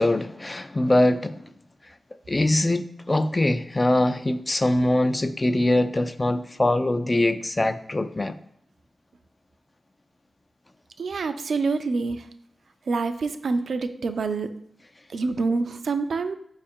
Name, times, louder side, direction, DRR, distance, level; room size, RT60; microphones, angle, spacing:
voice 1, 0.0-1.4 2.3-8.4, left 1 dB, 30° left, 0.3 m, -22 dB
voice 2, 11.0-12.2 12.9-14.5 15.1-16.4, right 4 dB, 80° right, 0.3 m, -26 dB
5.0 x 2.4 x 4.3 m
cardioid pair, 60°, 0 cm